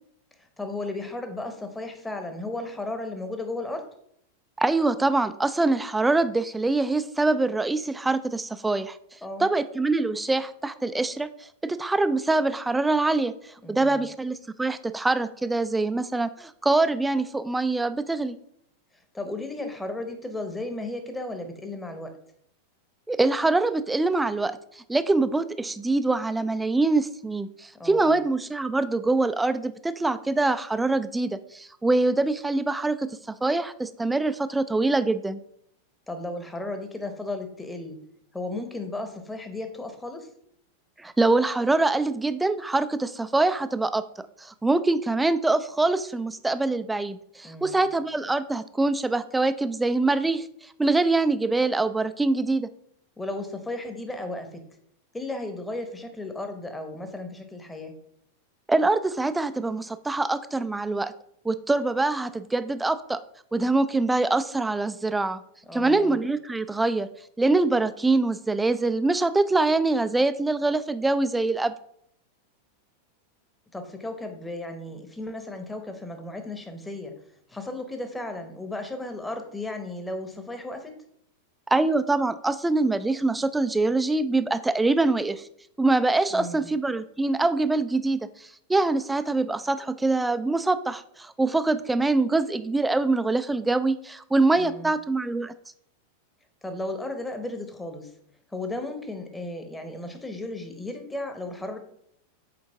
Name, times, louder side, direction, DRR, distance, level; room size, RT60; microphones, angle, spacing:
voice 1, 0.4-3.9 9.2-9.5 13.6-14.0 19.1-22.1 27.8-28.2 36.1-38.0 38.3-40.3 47.4-47.8 53.2-54.6 55.1-57.9 65.7-66.2 73.7-77.1 77.5-80.9 86.3-86.7 94.6-94.9 96.6-98.1 98.5-101.8, left 2 dB, 10° left, 6 dB, 0.9 m, -35 dB
voice 2, 4.6-9.0 9.4-11.3 11.6-13.3 13.7-18.4 23.1-35.4 41.0-44.0 44.4-50.5 50.8-52.7 58.7-61.1 61.4-63.2 63.5-65.4 65.7-67.1 67.4-71.7 81.7-85.4 85.8-95.5, right 2 dB, 10° right, 12 dB, 0.4 m, -24 dB
6.8 x 4.6 x 3.4 m, 0.68 s
figure-of-eight pair, 90°, 0 cm